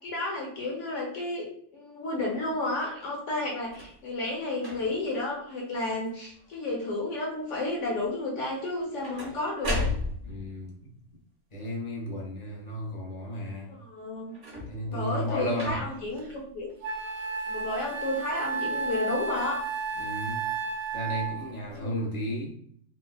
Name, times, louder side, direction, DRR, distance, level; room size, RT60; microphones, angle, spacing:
voice 1, 0.0-9.9 13.7-14.4 14.9-16.7 17.5-19.6 21.7-22.1, left 2 dB, 65° left, -2 dB, 1.2 m, -32 dB
sound 1, 3.6-4.0 4.6-5.1 5.7-6.1 6.4-6.9 8.6-10.5 14.3-14.9 15.5-16.1 16.9-17.0, left 2 dB, 40° right, 1.0 m, -35 dB
voice 2, 10.2-10.9 11.5-13.7 14.7-15.8 20.0-20.4 20.9-22.6, equal, 45° left, -2 dB, 0.6 m, -33 dB
Wind instrument woodwind instrument, 16.2-16.3 16.8-21.5, right 4 dB, 60° right, 0.6 m, -32 dB
3.4 x 2.2 x 2.2 m, 0.64 s
omnidirectional pair, 1.4 m